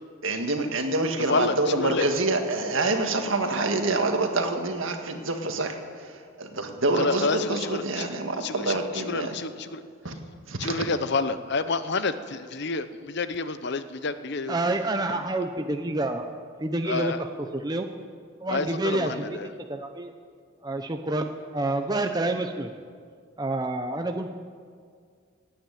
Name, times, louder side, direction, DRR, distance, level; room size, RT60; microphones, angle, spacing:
voice 1, 0.2-9.3 10.0-10.2 10.5-10.9, right 2 dB, 65° right, 4 dB, 1.8 m, -27 dB
voice 2, 1.3-2.1 7.0-8.1 8.4-9.8 10.6-14.6 16.9-17.2 18.5-19.5, left 4 dB, 50° left, 12 dB, 0.7 m, -29 dB
voice 3, 14.5-17.3 17.5-17.9 18.4-19.4 19.7-20.1 20.6-22.7 23.4-24.3, right 2 dB, 20° right, 5 dB, 0.6 m, -28 dB
17.0 x 9.1 x 9.2 m, 2.1 s
head